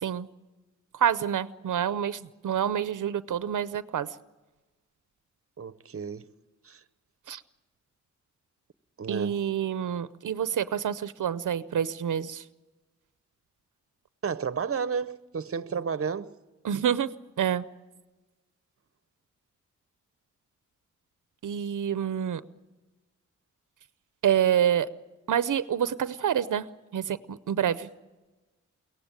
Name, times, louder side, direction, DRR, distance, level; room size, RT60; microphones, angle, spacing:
voice 1, 0.9-4.1 7.3-7.4 9.1-12.4 16.6-17.1 17.4-17.6 21.4-22.4 24.2-24.9 25.3-26.7 26.9-27.9, right 9 dB, 80° right, 0.7 m, -27 dB
voice 2, 5.6-6.3 6.6-6.8 9.0-9.4 14.2-16.3, right 6 dB, 50° right, 0.8 m, -32 dB
22.5 x 17.5 x 8.9 m
wide cardioid pair, 105°, 30 cm